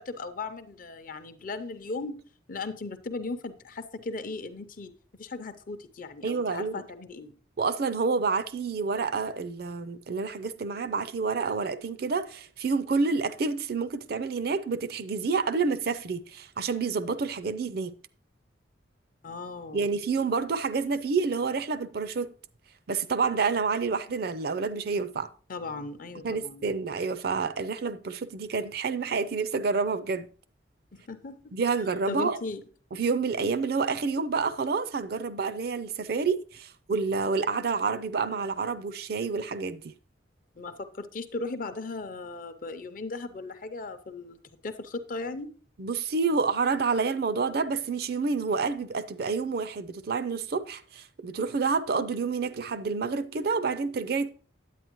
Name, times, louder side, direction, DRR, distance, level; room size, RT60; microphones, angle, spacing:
voice 1, 0.0-2.2 2.5-4.9 5.2-7.3 19.2-19.9 25.5-26.7 30.9-31.4 32.1-32.6 40.6-45.5, left 3 dB, 45° left, 0.6 m, -37 dB
voice 2, 6.2-6.8 7.6-17.9 19.7-22.3 22.9-25.3 26.2-30.3 31.5-32.4 32.9-39.9 45.8-54.3, right 4 dB, 55° right, 0.5 m, -28 dB
9.1 x 8.7 x 3.0 m
head